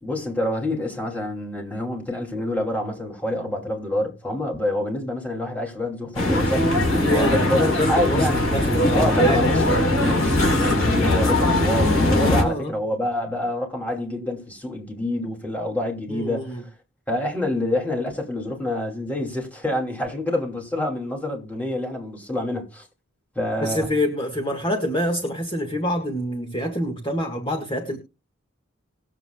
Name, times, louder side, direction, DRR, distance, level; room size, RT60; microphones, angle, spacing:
voice 1, 0.0-6.8 7.1-7.6 7.9-8.5 8.9-16.7 17.1-22.9 23.3-24.0, left 1 dB, 5° left, 2.7 m, -27 dB
sound 1, 6.2-12.4, left 1 dB, 75° left, 4.7 m, -20 dB
voice 2, 6.9-8.2 8.5-9.4 12.1-12.8 16.1-16.6 23.6-28.0, equal, 25° left, 1.7 m, -26 dB
sound 2, 8.1-10.2, left 1 dB, 50° left, 3.5 m, -33 dB
20.5 x 7.6 x 2.3 m
head